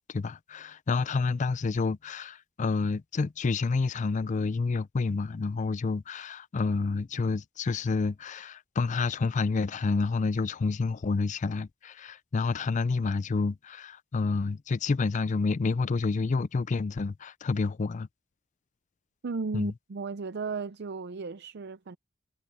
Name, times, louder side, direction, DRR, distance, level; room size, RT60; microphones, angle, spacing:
voice 1, 0.1-18.1 19.5-19.7, left 4 dB, 40° left, 0.4 m, -29 dB
voice 2, 19.2-22.0, right 4 dB, 55° right, 0.5 m, -35 dB
head